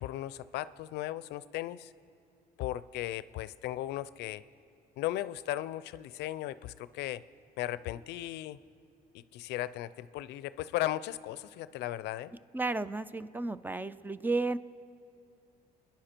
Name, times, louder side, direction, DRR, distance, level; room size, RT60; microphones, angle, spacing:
voice 1, 0.0-1.9 2.6-4.4 5.0-7.2 7.6-8.6 9.3-12.3, left 14 dB, 80° left, 16 dB, 0.5 m, -36 dB
voice 2, 12.5-14.6, right 3 dB, 10° right, 15 dB, 0.4 m, -33 dB
30.0 x 10.5 x 4.4 m, 2.4 s
cardioid pair, 110°, 17 cm